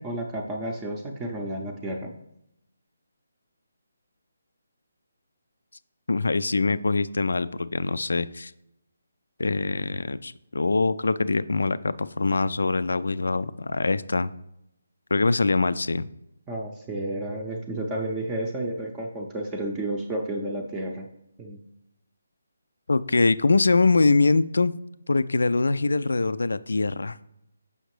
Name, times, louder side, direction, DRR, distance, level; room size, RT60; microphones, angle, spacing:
voice 1, 0.0-2.1 16.5-21.1 21.4-21.6, right 1 dB, 15° right, 0 dB, 0.6 m, -31 dB
voice 2, 6.1-8.5 9.4-14.3 15.1-16.1 22.9-24.7 25.1-27.2, left 3 dB, 70° left, 16 dB, 0.3 m, -23 dB
6.8 x 5.7 x 3.1 m, 0.81 s
figure-of-eight pair, 150°, 0 cm